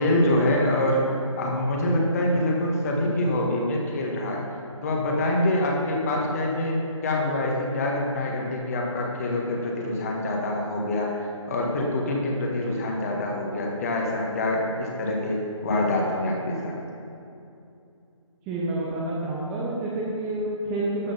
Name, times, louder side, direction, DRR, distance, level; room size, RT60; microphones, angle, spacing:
voice 1, 0.0-4.4 4.8-16.7, left 1 dB, 30° left, -1 dB, 1.6 m, -25 dB
voice 2, 18.5-21.1, right 2 dB, 10° right, -5 dB, 0.8 m, -28 dB
12.5 x 6.1 x 5.6 m, 2.6 s
figure-of-eight pair, 150°, 17 cm